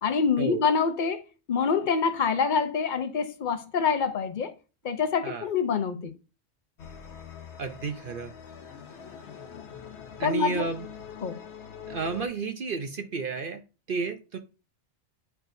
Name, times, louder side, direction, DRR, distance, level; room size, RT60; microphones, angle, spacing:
voice 1, 0.0-1.2 1.5-4.5 4.8-6.1 10.2-10.7 11.2-11.4, left 5 dB, 45° left, 0.8 m, -26 dB
sound 1, 6.8-12.3, left 7 dB, 65° left, 1.0 m, -44 dB
voice 2, 7.6-8.3 10.2-10.9 11.9-13.6 13.9-14.4, right 4 dB, 55° right, 0.7 m, -32 dB
8.9 x 4.5 x 2.6 m
omnidirectional pair, 1.3 m